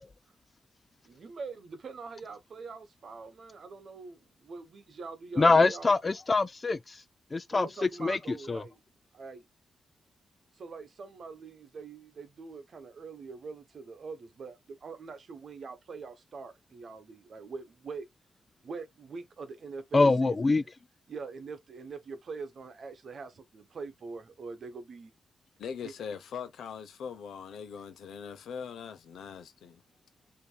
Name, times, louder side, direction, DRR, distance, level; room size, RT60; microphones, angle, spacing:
voice 1, 1.0-5.9 7.5-8.8 9.1-9.5 10.6-18.1 18.6-20.4 21.1-25.1 25.8-25.9, right 4 dB, 50° right, 1.1 m, -43 dB
voice 2, 5.4-7.0 7.3-7.7 8.0-8.6 19.9-20.6, left 3 dB, 25° left, 0.3 m, -24 dB
voice 3, 25.6-29.8, left 7 dB, 85° left, 0.9 m, -41 dB
6.8 x 2.9 x 2.3 m
cardioid pair, 120°, 0 cm